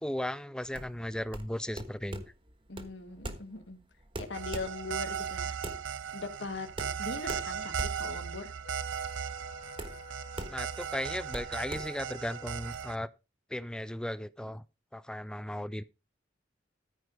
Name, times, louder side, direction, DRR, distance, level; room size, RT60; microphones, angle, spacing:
voice 1, 0.0-2.2 10.5-13.1 13.5-14.6 14.9-15.8, left 1 dB, 5° left, 0.4 m, -36 dB
sound 1, 0.6-12.8, right 1 dB, 25° right, 1.3 m, -43 dB
voice 2, 2.7-3.8 4.2-5.6 6.1-6.7 7.0-8.5, left 3 dB, 65° left, 1.5 m, -40 dB
sound 2, 4.3-12.9, right 7 dB, 80° right, 0.5 m, -37 dB
Wind instrument woodwind instrument, 8.6-13.0, left 5 dB, 45° left, 1.4 m, -52 dB
13.5 x 4.8 x 5.1 m
head